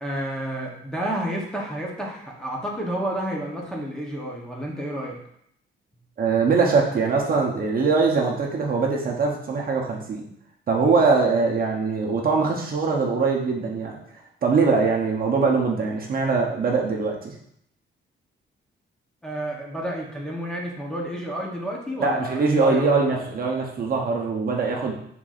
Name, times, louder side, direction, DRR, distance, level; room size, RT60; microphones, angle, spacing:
voice 1, 0.0-5.2 10.8-11.0 19.2-23.1, right 1 dB, 5° left, -4 dB, 0.8 m, -30 dB
voice 2, 6.2-10.2 10.7-14.0 14.4-17.3 22.0-25.0, right 4 dB, 45° right, -1 dB, 0.8 m, -22 dB
5.8 x 3.7 x 2.4 m, 0.73 s
cardioid pair, 135°, 21 cm